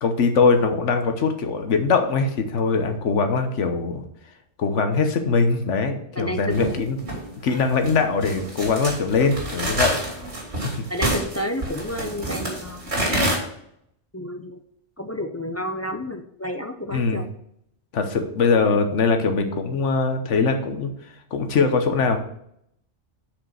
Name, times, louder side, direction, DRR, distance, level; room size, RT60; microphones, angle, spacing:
voice 1, 0.0-4.0 4.6-7.0 7.4-9.9 16.9-17.2 17.9-20.9 21.3-22.2, left 4 dB, 80° left, 6 dB, 1.3 m, -21 dB
voice 2, 6.2-6.6 10.9-12.8 14.1-14.6 15.0-17.3, left 1 dB, 25° left, 5 dB, 0.3 m, -30 dB
sound 1, 6.5-13.4, right 1 dB, 65° right, 3.2 m, -27 dB
6.1 x 5.1 x 6.4 m, 0.72 s
omnidirectional pair, 1.2 m